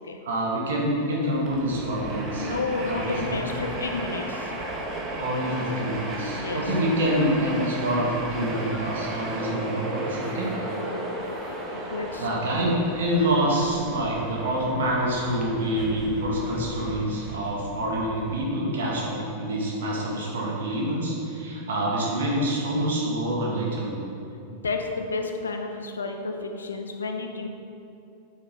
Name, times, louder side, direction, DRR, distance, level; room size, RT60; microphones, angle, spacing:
voice 1, 0.2-2.5 2.9-3.4 5.2-10.5 12.2-24.0, right 1 dB, 60° right, -3 dB, 2.2 m, -26 dB
Train, 1.2-18.8, right 1 dB, 30° right, 2.2 m, -35 dB
voice 2, 2.4-4.5 6.3-6.6 10.7-12.2 24.5-27.5, left 3 dB, 70° left, 4 dB, 1.0 m, -31 dB
8.8 x 8.7 x 5.9 m, 2.7 s
figure-of-eight pair, 90°, 0 cm